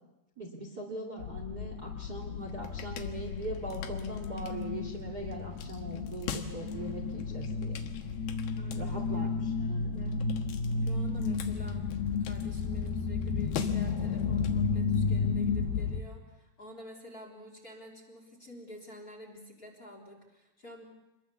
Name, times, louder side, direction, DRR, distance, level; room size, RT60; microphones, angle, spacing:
voice 1, 0.4-7.9 8.7-9.3 9.6-10.0, right 1 dB, 30° right, 1 dB, 2.5 m, -41 dB
sound 1, 1.2-16.0, left 5 dB, 75° left, 3.3 m, -32 dB
voice 2, 8.6-9.3 9.9-10.2 10.8-20.9, left 1 dB, 20° left, 0 dB, 3.7 m, -49 dB
26.5 x 21.5 x 7.1 m, 0.97 s
omnidirectional pair, 4.7 m